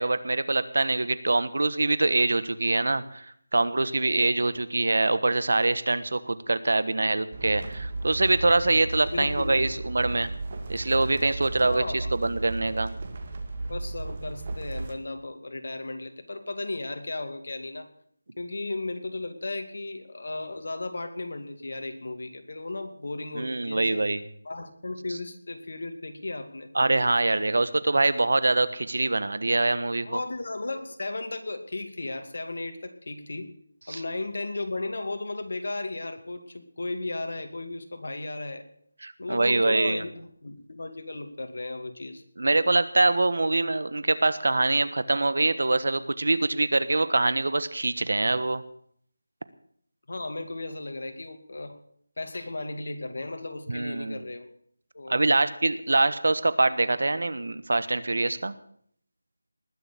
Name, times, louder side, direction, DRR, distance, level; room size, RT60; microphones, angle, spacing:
voice 1, 0.0-10.3 10.7-12.9 23.4-24.2 25.1-25.2 26.7-30.2 33.9-34.0 39.0-40.0 42.4-48.6 53.7-54.2 55.1-58.5, right 2 dB, 65° right, 14 dB, 1.2 m, -24 dB
sound 1, 7.3-14.9, right 2 dB, 35° right, 2.0 m, -35 dB
voice 2, 9.1-9.8 11.6-12.2 13.7-17.9 18.4-24.0 24.4-26.7 30.0-33.5 33.9-38.6 39.2-42.2 50.1-51.8 52.2-54.5 54.9-55.4, left 2 dB, 60° left, 6 dB, 2.3 m, -35 dB
20.0 x 7.0 x 8.3 m, 0.64 s
figure-of-eight pair, 175°, 0 cm